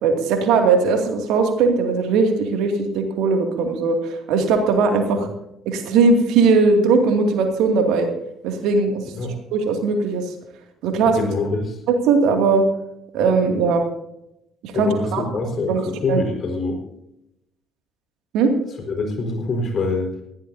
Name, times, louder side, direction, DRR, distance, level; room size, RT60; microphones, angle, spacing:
voice 1, 0.0-5.3 5.7-8.1 8.4-9.0 9.5-10.2 10.8-11.2 11.9-12.6 13.1-13.8 14.6-15.2 15.7-15.8 16.1-16.2 18.3-18.5, right 4 dB, 65° right, 5 dB, 2.4 m, -19 dB
voice 2, 11.0-11.8 14.7-16.8 18.9-20.1, left 3 dB, 45° left, 2 dB, 4.8 m, -25 dB
20.5 x 14.5 x 2.8 m, 0.82 s
hypercardioid pair, 50°, 0 cm